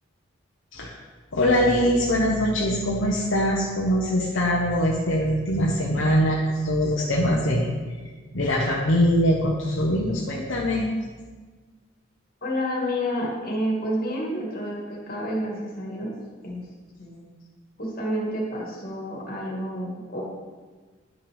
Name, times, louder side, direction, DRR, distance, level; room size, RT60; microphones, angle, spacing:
voice 1, 1.3-7.7 8.3-10.9, equal, 70° left, -3 dB, 0.9 m, -22 dB
voice 2, 12.4-16.2 16.4-16.7 17.0-17.2 17.8-20.2, equal, 45° left, -2 dB, 1.8 m, -29 dB
10.5 x 6.1 x 3.4 m, 1.4 s
head